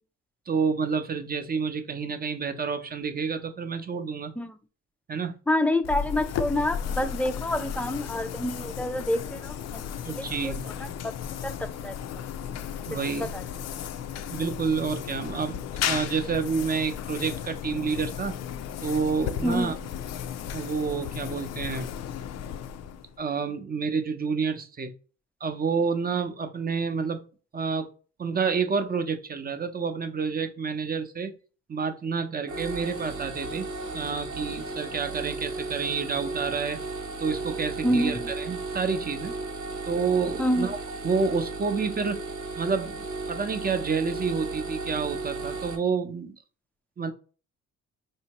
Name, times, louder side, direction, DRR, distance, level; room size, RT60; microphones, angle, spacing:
voice 1, 0.5-4.3 5.1-5.3 10.0-10.7 12.8-13.3 14.3-18.3 18.8-19.7 20.5-21.9 23.2-24.9 25.4-27.2 27.5-27.9 28.2-31.3 31.7-33.7 33.9-36.8 37.2-39.3 39.9-40.8 41.0-42.2 42.6-46.4 47.0-47.1, right 5 dB, 30° right, 0.7 m, -29 dB
voice 2, 5.5-9.8 10.1-10.5 11.4-12.0 12.9-13.3 19.4-19.7 37.8-38.3 40.4-40.7, left 1 dB, 5° left, 0.4 m, -27 dB
sound 1, 5.8-23.2, left 8 dB, 60° left, 0.4 m, -34 dB
sound 2, 32.5-45.7, right 3 dB, 85° right, 1.3 m, -35 dB
4.4 x 2.7 x 2.9 m
cardioid pair, 90°, 30 cm